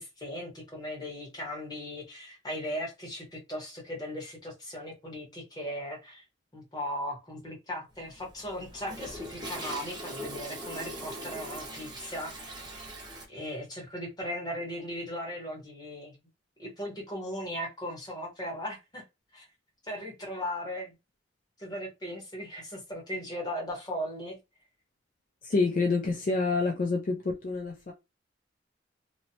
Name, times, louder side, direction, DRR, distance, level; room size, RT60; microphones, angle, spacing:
voice 1, 0.0-6.2 6.5-12.7 13.3-16.2 16.6-19.0 19.3-19.4 19.8-20.9 21.6-24.4, equal, 20° left, 1.0 m, -38 dB
Toilet flush, 8.0-13.2, right 1 dB, 25° right, 0.7 m, -41 dB
voice 2, 25.4-27.9, left 3 dB, 45° left, 0.4 m, -27 dB
3.0 x 2.1 x 2.7 m
head